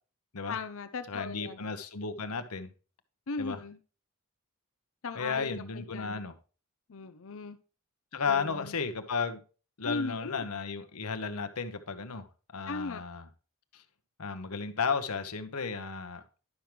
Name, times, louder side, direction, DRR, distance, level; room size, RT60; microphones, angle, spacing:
voice 1, 0.5-1.6 3.3-3.8 5.0-6.2 6.9-7.6 8.3-8.7 9.8-10.4 12.7-13.0, left 3 dB, 65° left, 0.7 m, -38 dB
voice 2, 1.1-2.7 3.4-3.6 5.1-6.3 8.1-9.4 9.8-13.3 13.7-13.8 14.2-16.2, left 5 dB, 85° left, 1.0 m, -34 dB
11.0 x 6.0 x 3.3 m
head